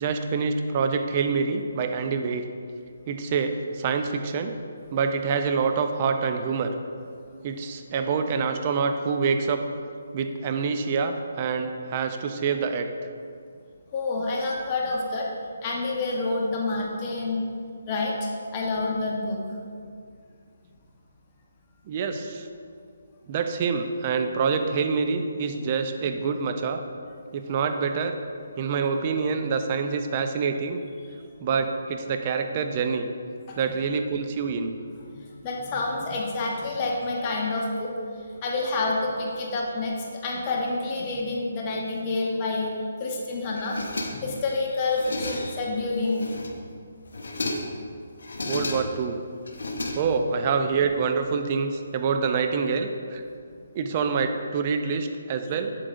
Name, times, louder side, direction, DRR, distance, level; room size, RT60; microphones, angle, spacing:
voice 1, 0.0-2.5 3.1-4.5 4.9-6.7 7.4-9.6 10.1-12.9 21.9-22.5 23.3-26.8 27.3-28.1 28.6-30.8 31.4-33.1 33.6-34.7 48.4-49.2 49.9-53.2 53.7-55.7, right 5 dB, 35° right, 6 dB, 0.5 m, -26 dB
voice 2, 13.9-15.3 15.6-17.4 17.9-19.4 33.5-33.8 35.1-37.9 38.4-39.9 40.2-42.7 43.0-46.2, left 3 dB, 30° left, -2 dB, 1.0 m, -28 dB
sound 1, 43.6-44.4 44.8-45.7 46.1-46.7 47.1-47.8 48.2-49.1 49.5-50.4, left 2 dB, 75° left, 0.9 m, -33 dB
7.6 x 7.6 x 2.5 m, 2.2 s
hypercardioid pair, 155°, 0 cm